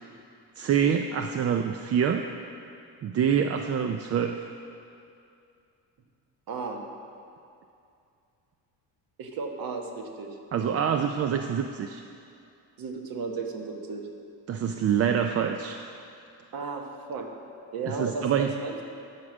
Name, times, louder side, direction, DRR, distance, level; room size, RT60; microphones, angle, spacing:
voice 1, 0.6-2.2 3.0-4.4 10.5-12.0 14.5-15.8 18.0-18.5, right 8 dB, 35° right, 5 dB, 0.4 m, -26 dB
voice 2, 6.5-6.8 9.2-10.4 12.8-14.1 16.5-17.3 17.7-18.8, right 4 dB, 55° right, 3 dB, 1.4 m, -34 dB
13.0 x 6.0 x 6.2 m, 2.5 s
cardioid pair, 125°, 42 cm